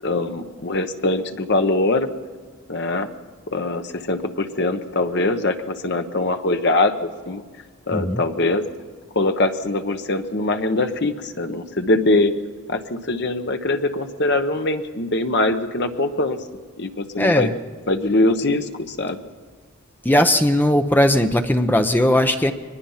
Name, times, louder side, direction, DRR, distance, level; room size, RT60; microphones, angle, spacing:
voice 1, 0.0-2.1 2.7-3.1 3.5-7.4 7.9-8.6 9.1-12.3 12.7-16.4 16.8-17.5 17.9-19.2, left 2 dB, 50° left, 7 dB, 1.1 m, -22 dB
voice 2, 7.9-8.2 17.2-17.5 20.0-22.5, left 1 dB, 10° left, 7 dB, 0.7 m, -18 dB
23.0 x 20.5 x 5.7 m, 1.5 s
head